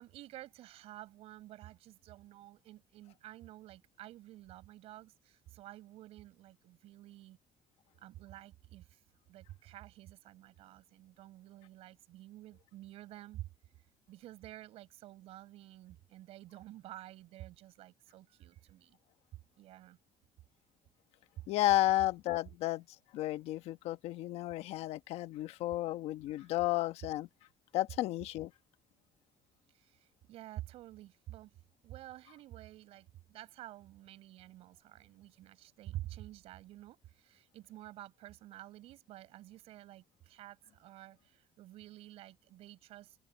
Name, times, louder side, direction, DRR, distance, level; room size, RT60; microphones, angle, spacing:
voice 1, 0.0-7.4 8.0-9.0 9.3-13.5 14.1-19.0 19.6-20.0 22.6-22.7 26.3-26.5 29.7-31.5 31.8-43.2, right 15 dB, 75° right, 5.8 m, -50 dB
voice 2, 21.5-22.8 23.1-27.3 27.7-28.5, left 15 dB, 80° left, 1.2 m, -32 dB
open air
cardioid pair, 140°, 10 cm